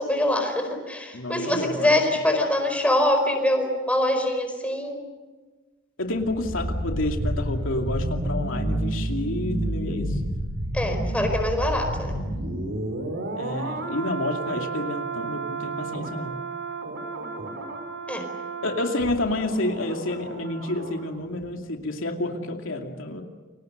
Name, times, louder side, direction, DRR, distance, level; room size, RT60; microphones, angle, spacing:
voice 1, 0.0-5.0 10.7-12.1 18.1-18.2, left 1 dB, 5° left, 4 dB, 4.7 m, -24 dB
voice 2, 1.1-2.2 6.0-10.2 13.3-16.4 18.6-23.2, left 2 dB, 85° left, 3 dB, 2.6 m, -29 dB
sound 1, 6.1-21.1 21.3-21.5, right 1 dB, 65° right, 5.2 m, -30 dB
29.5 x 24.0 x 6.7 m, 1.3 s
head